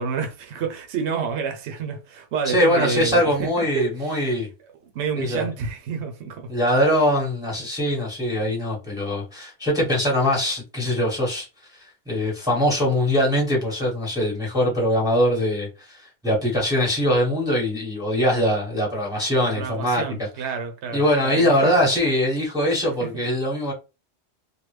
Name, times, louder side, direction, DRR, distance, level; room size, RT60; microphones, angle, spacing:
voice 1, 0.0-4.2 4.9-6.5 19.5-21.7 23.0-23.1, right 6 dB, 75° right, 0.9 m, -29 dB
voice 2, 2.4-4.5 5.2-5.5 6.5-11.5 12.1-20.0 20.9-23.7, equal, 5° right, 1.1 m, -22 dB
3.1 x 2.3 x 3.2 m
omnidirectional pair, 1.2 m